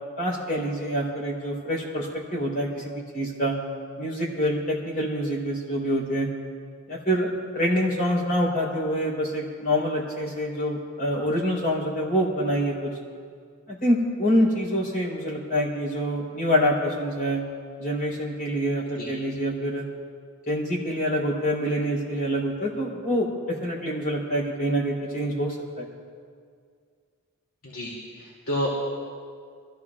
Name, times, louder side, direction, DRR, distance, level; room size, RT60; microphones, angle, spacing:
voice 1, 0.2-3.6 4.0-6.3 6.9-7.3 7.5-12.9 13.7-17.4 17.8-19.9 20.5-25.9, equal, 45° left, -4 dB, 3.9 m, -26 dB
voice 2, 27.6-28.7, equal, 75° left, -6 dB, 2.7 m, -30 dB
27.5 x 15.0 x 2.5 m, 2.1 s
head